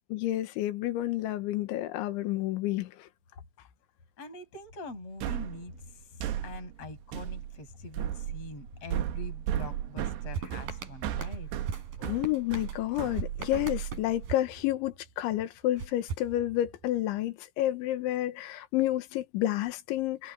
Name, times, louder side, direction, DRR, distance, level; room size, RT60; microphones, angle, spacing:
voice 1, 0.1-3.1 12.0-20.3, left 14 dB, 85° left, 3.8 m, -30 dB
voice 2, 4.2-11.5, left 2 dB, 30° left, 7.2 m, -44 dB
sound 1, 5.2-14.3, right 11 dB, 70° right, 3.0 m, -35 dB
sound 2, 10.3-15.2 15.8-17.0, right 5 dB, 50° right, 5.6 m, -40 dB
omnidirectional pair, 5.4 m